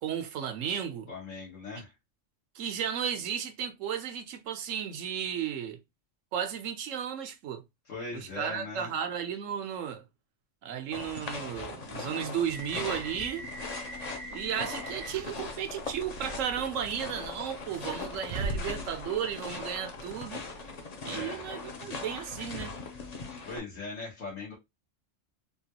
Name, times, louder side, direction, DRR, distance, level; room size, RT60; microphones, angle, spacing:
voice 1, 0.0-1.1 2.5-5.8 6.3-7.6 8.1-10.0 10.6-13.5 14.3-20.4 21.0-22.7, right 8 dB, 85° right, 1.1 m, -34 dB
voice 2, 1.1-1.9 7.9-8.9 21.1-21.5 23.4-24.5, left 3 dB, 80° left, 1.6 m, -39 dB
sound 1, 10.9-23.6, left 4 dB, 40° left, 0.6 m, -40 dB
sound 2, 12.5-20.8, right 2 dB, 65° right, 0.8 m, -42 dB
3.6 x 2.3 x 2.8 m
omnidirectional pair, 1.3 m